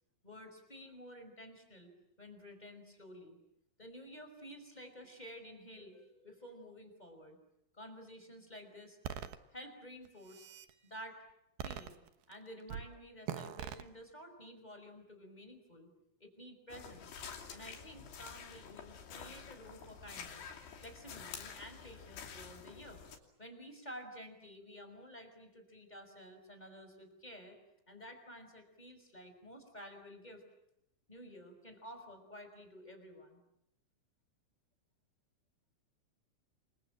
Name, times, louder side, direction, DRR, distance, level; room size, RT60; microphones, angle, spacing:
voice 1, 0.2-1.9 2.2-3.4 3.8-7.4 7.7-9.0 9.5-10.5 10.8-11.2 11.6-12.0 12.3-15.9 16.2-17.2 17.5-20.5 20.8-23.0 23.4-27.6 27.9-30.4 31.1-33.4, equal, 10° left, 6 dB, 4.7 m, -52 dB
sound 1, 9.0-9.4 10.1-10.7 11.6-12.3 12.7-12.9 13.3-13.8, right 10 dB, 70° right, 2.4 m, -42 dB
sound 2, 16.7-23.2, left 7 dB, 55° left, 4.6 m, -49 dB
29.0 x 25.5 x 7.6 m, 0.80 s
omnidirectional pair, 6.0 m